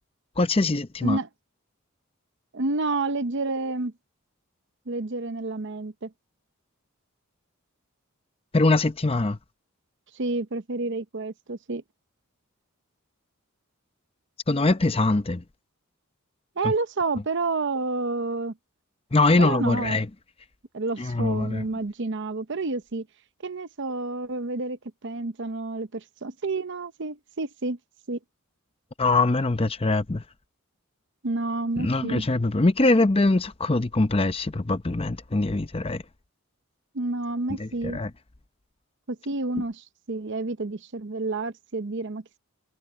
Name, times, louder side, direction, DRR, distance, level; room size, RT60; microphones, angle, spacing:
voice 1, 0.4-1.2 8.5-9.4 14.5-15.4 16.6-16.7 19.1-20.1 21.0-21.7 29.0-30.2 31.8-36.0 37.6-38.1, left 2 dB, 25° left, 0.7 m, -23 dB
voice 2, 2.5-3.9 4.9-6.1 10.1-11.8 16.6-18.5 19.4-20.0 20.7-23.1 23.4-27.8 28.1-28.2 31.2-32.3 36.9-38.0 39.1-42.2, right 3 dB, 60° right, 0.8 m, -29 dB
head